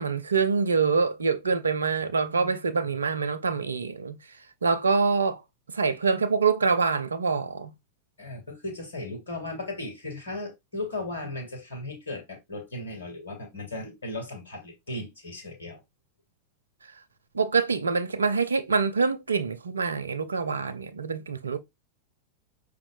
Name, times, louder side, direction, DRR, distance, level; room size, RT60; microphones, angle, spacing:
voice 1, 0.0-4.2 4.6-5.4 5.7-7.7 17.3-21.6, right 5 dB, 75° right, 0.5 m, -25 dB
voice 2, 8.2-15.8, left 2 dB, 70° left, 1.5 m, -36 dB
5.4 x 2.5 x 2.5 m
figure-of-eight pair, 90°, 0 cm